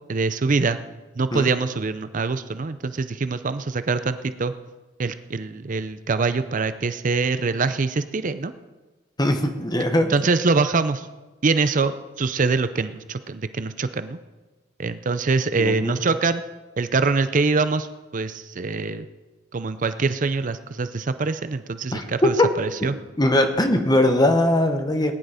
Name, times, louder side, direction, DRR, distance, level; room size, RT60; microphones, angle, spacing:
voice 1, 0.1-0.8 1.2-4.5 5.0-8.5 10.1-11.1 11.4-11.9 12.2-14.2 14.8-16.4 16.8-17.9 18.1-19.0 19.5-23.0, right 4 dB, 45° right, 12 dB, 0.5 m, -24 dB
voice 2, 9.2-10.1 15.6-16.0 21.9-22.5 23.2-25.1, left 1 dB, 20° left, 6 dB, 1.2 m, -20 dB
18.5 x 10.5 x 5.0 m, 1.2 s
head